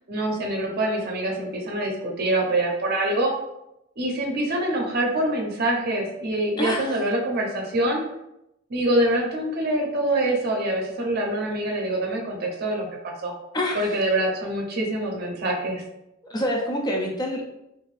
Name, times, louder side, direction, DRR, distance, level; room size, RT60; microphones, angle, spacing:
voice 1, 0.1-3.3 4.0-8.0 8.7-13.4 13.7-15.8, right 1 dB, 50° right, 0 dB, 0.6 m, -25 dB
voice 2, 6.6-7.1 13.5-14.0 16.3-17.5, left 1 dB, 20° left, 0 dB, 0.4 m, -27 dB
2.7 x 2.5 x 3.1 m, 0.86 s
head